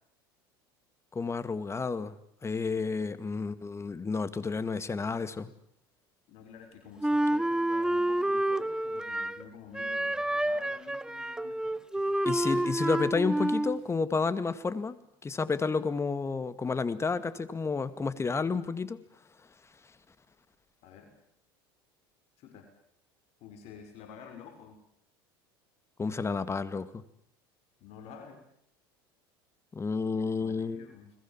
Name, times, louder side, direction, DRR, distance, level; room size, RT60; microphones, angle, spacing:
voice 1, 1.1-2.1 2.4-5.5 12.3-19.0 26.0-27.0 29.7-30.9, left 4 dB, 20° left, 14 dB, 2.1 m, -31 dB
voice 2, 6.3-12.2 20.8-21.1 22.4-22.7 23.4-24.8 27.8-28.4 30.3-31.1, left 6 dB, 60° left, 4 dB, 6.0 m, -50 dB
Wind instrument woodwind instrument, 7.0-9.4 9.7-13.8, right 1 dB, 5° right, 1.0 m, -29 dB
30.0 x 21.5 x 7.5 m, 0.70 s
hypercardioid pair, 85°, 12 cm